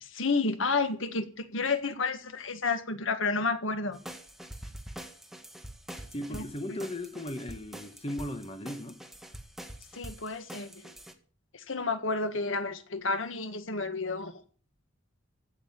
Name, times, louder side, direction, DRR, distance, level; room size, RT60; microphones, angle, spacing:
voice 1, 0.0-4.0 6.3-6.4 6.7-6.8 9.9-10.9 11.5-14.3, left 3 dB, 65° left, 1.7 m, -31 dB
sound 1, 3.9-11.1, right 1 dB, ahead, 1.9 m, -45 dB
voice 2, 6.1-9.0, left 1 dB, 30° left, 1.4 m, -37 dB
16.0 x 6.6 x 9.4 m
head